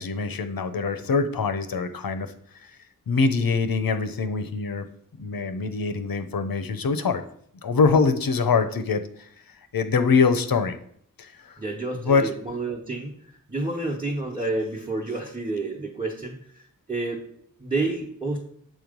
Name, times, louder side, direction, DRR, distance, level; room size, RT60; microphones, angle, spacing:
voice 1, 0.0-2.3 2.6-2.7 3.1-4.9 5.2-7.2 7.6-9.3 9.7-10.8 11.2-11.6 11.9-12.3, left 4 dB, 85° left, 9 dB, 0.7 m, -24 dB
voice 2, 11.6-13.1 13.5-16.4 16.9-17.3 17.6-18.4, right 2 dB, 15° right, -2 dB, 1.1 m, -29 dB
7.7 x 3.1 x 5.1 m, 0.65 s
wide cardioid pair, 70°, 34 cm